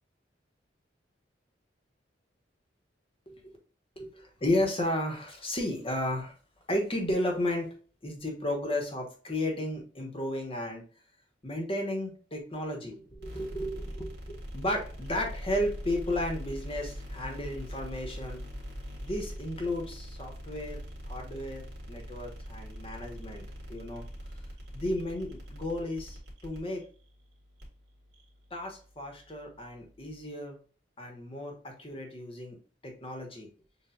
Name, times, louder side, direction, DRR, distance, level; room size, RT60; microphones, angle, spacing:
voice 1, 4.0-6.3 6.7-7.7 8.0-10.8 11.4-18.4 19.0-23.4 23.7-24.0 24.7-26.8 28.5-30.6 31.0-32.6 32.8-33.5, left 1 dB, 30° left, 1 dB, 1.3 m, -33 dB
sound 1, 13.1-30.2, equal, 60° right, 1.9 m, -43 dB
7.0 x 2.7 x 2.5 m, 0.40 s
head